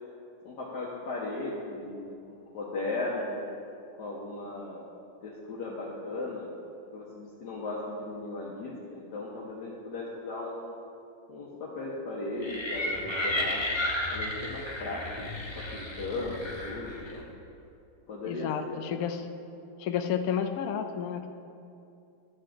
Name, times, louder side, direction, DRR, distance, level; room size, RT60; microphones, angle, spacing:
voice 1, 0.4-3.5 4.0-4.8 5.2-6.5 6.9-10.7 11.3-13.7 14.1-17.2 18.1-18.8, left 2 dB, 55° left, -6 dB, 1.7 m, -37 dB
sound 1, 12.4-17.2, left 1 dB, 25° left, 0.6 m, -33 dB
voice 2, 18.2-19.2 19.8-21.3, left 8 dB, 75° left, 6 dB, 0.8 m, -31 dB
12.0 x 4.7 x 7.7 m, 2.6 s
omnidirectional pair, 2.3 m